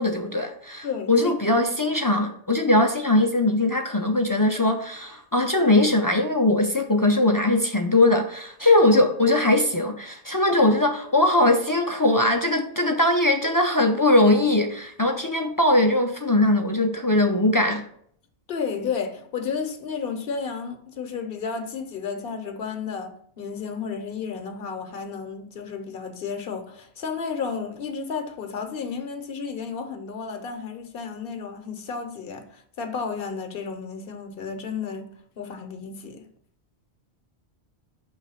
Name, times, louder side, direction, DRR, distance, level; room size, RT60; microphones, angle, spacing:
voice 1, 0.0-17.8, left 1 dB, 35° left, 0.3 m, -20 dB
voice 2, 0.8-1.3 18.5-35.1 35.4-36.3, left 5 dB, 60° left, 0.9 m, -32 dB
6.2 x 3.1 x 5.6 m
omnidirectional pair, 1.1 m